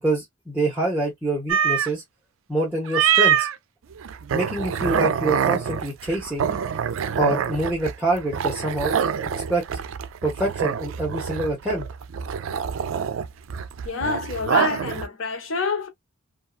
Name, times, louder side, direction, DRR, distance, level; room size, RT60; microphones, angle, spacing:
voice 1, 0.0-2.0 2.5-3.5 4.3-6.5 7.2-8.9 9.5-9.6 10.2-11.9, right 2 dB, 5° right, 1.0 m, -25 dB
sound 1, 1.5-1.9 2.9-3.5 4.0-15.1, right 8 dB, 85° right, 0.4 m, -25 dB
voice 2, 13.8-15.9, left 5 dB, 75° left, 0.9 m, -27 dB
2.7 x 2.4 x 2.3 m
head